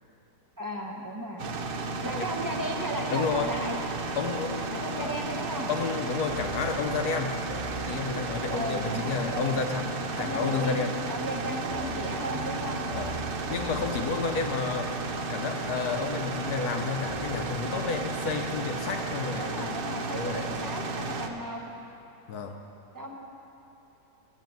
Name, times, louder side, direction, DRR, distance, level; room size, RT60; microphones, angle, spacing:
voice 1, 0.6-1.4 2.0-3.8 4.7-5.7 8.5-9.6 10.2-12.8 19.4-21.6 22.9-23.1, equal, 20° right, 0 dB, 0.6 m, -35 dB
sound 1, 1.4-21.3, right 3 dB, 80° right, 0.5 m, -33 dB
voice 2, 3.1-3.5 4.2-5.1 5.7-7.4 7.9-11.0 12.9-13.2 13.5-15.0 15.3-19.7 20.1-20.5 22.3-22.6, left 5 dB, 70° left, 4 dB, 1.1 m, -31 dB
sound 2, 3.2-18.3, right 3 dB, 20° left, 1.4 m, -44 dB
9.2 x 7.4 x 9.0 m, 2.9 s
omnidirectional pair, 1.8 m